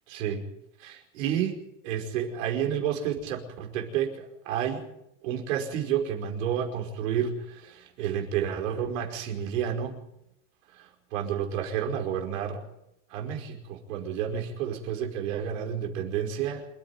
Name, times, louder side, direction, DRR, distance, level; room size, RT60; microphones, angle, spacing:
voice 1, 0.1-0.5 0.8-4.8 5.2-10.0 10.7-12.6 13.1-16.7, right 9 dB, 80° right, 2 dB, 5.4 m, -30 dB
27.5 x 10.0 x 9.7 m, 0.83 s
supercardioid pair, 140°, 38 cm